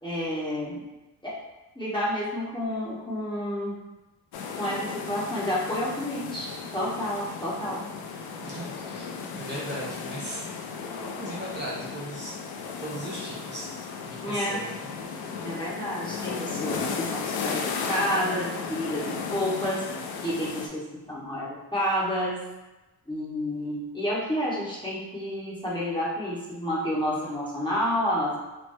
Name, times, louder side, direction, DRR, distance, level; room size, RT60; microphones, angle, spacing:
voice 1, 0.0-0.8 1.2-1.3 1.7-3.8 4.6-7.8 14.2-14.6 15.4-19.9 20.2-22.4 23.1-28.4, equal, 15° left, -7 dB, 1.4 m, -30 dB
sound 1, 4.3-20.7, left 5 dB, 85° left, 0.5 m, -35 dB
voice 2, 8.4-10.4 10.9-12.3 12.8-13.7 14.1-14.9, right 1 dB, 30° right, -5 dB, 1.0 m, -37 dB
4.0 x 2.1 x 3.1 m, 1.1 s
supercardioid pair, 60°, 36 cm